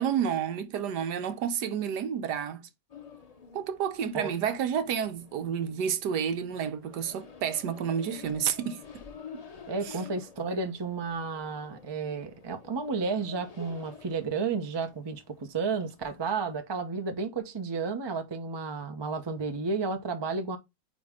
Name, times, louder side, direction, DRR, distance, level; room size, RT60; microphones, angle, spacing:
voice 1, 0.0-2.7 3.5-8.8 9.9-10.0, right 8 dB, 75° right, 1.3 m, -30 dB
sound 1, 2.9-16.6, left 5 dB, 40° left, 0.5 m, -50 dB
voice 2, 9.7-20.6, right 4 dB, 25° right, 0.5 m, -32 dB
8.9 x 3.1 x 3.6 m
omnidirectional pair, 1.9 m